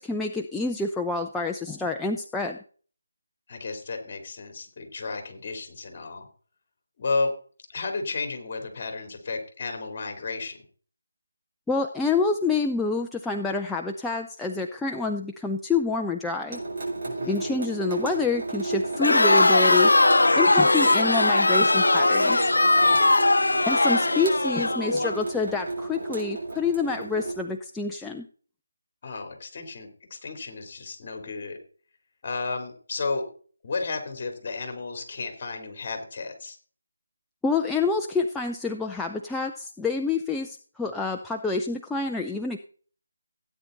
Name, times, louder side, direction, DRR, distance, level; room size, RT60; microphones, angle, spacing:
voice 1, 0.0-2.6 11.7-16.6 17.3-19.9 20.3-22.5 23.7-28.3 37.4-42.6, left 4 dB, 5° left, 2 dB, 0.5 m, -27 dB
voice 2, 3.5-6.3 7.0-7.3 7.7-10.6 17.0-17.4 22.7-23.0 29.0-31.6 32.2-33.2 33.6-36.6, left 3 dB, 35° left, 6 dB, 3.3 m, -33 dB
Water tap faucet / Sink (filling or washing) / Drip, 16.5-27.3, right 3 dB, 50° right, 5.3 m, -33 dB
Crowd, 19.0-25.2, left 2 dB, 85° left, 0.6 m, -20 dB
16.5 x 9.4 x 4.0 m, 0.44 s
figure-of-eight pair, 165°, 0 cm